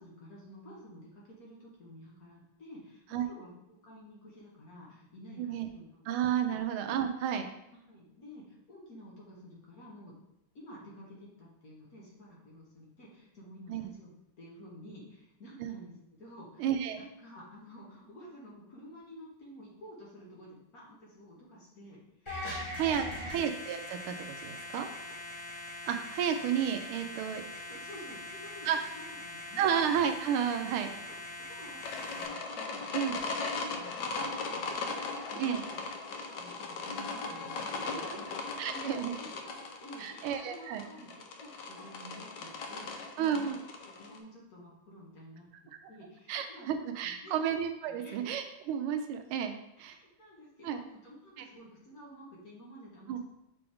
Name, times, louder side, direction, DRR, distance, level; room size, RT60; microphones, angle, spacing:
voice 1, 0.0-6.0 6.5-6.6 7.8-10.1 10.5-16.7 16.9-22.5 22.9-23.2 25.1-25.2 27.5-29.7 30.5-31.1 31.5-38.9 39.2-45.5 45.9-46.7 47.0-47.4 47.9-48.2 49.8-53.2, equal, 45° left, -4 dB, 1.7 m, -51 dB
voice 2, 5.4-5.7 6.1-7.5 13.7-13.9 15.6-15.8 16.6-17.0 22.5-24.9 25.9-27.4 28.7-28.8 29.6-30.9 32.9-33.2 35.4-35.6 38.6-39.1 40.0-40.8 43.2-43.6 46.3-49.5 49.8-50.0 50.6-50.8 51.4-51.5 53.1-53.2, right 8 dB, 85° right, 7 dB, 1.5 m, -32 dB
sound 1, 22.3-32.3, left 1 dB, 15° left, 1.4 m, -42 dB
sound 2, 31.8-44.2, left 3 dB, 70° left, 1.2 m, -38 dB
6.0 x 4.6 x 3.5 m, 0.83 s
omnidirectional pair, 2.3 m